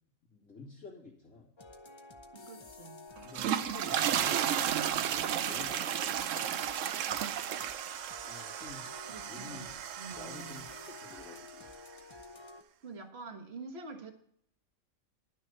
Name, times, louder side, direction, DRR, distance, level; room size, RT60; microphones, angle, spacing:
voice 1, 0.3-1.5 3.2-4.5 4.8-6.5 8.2-8.9 9.2-9.7 10.1-11.7, left 4 dB, 85° left, -7 dB, 2.7 m, -50 dB
sound 1, 1.6-12.6, left 3 dB, 30° left, 0.6 m, -51 dB
voice 2, 2.3-3.1 9.1-10.7 12.8-14.1, right 3 dB, 50° right, 4 dB, 1.6 m, -47 dB
sound 2, 3.2-11.5, right 10 dB, 70° right, 0.9 m, -34 dB
11.0 x 6.4 x 6.6 m, 0.68 s
omnidirectional pair, 1.4 m